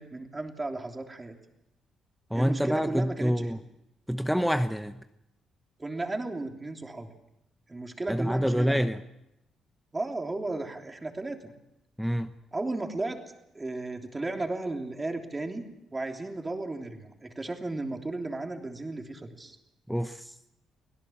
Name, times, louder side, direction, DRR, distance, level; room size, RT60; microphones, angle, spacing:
voice 1, 0.0-1.4 2.3-3.6 5.8-7.1 7.7-8.8 9.9-11.5 12.5-13.2 13.5-15.6 15.9-19.6, right 2 dB, 20° right, 3 dB, 3.1 m, -34 dB
voice 2, 2.3-3.6 4.1-5.0 8.1-9.0 12.0-12.3 19.9-20.3, equal, ahead, 8 dB, 0.9 m, -27 dB
24.5 x 17.0 x 7.2 m, 0.85 s
cardioid pair, 90°, 0 cm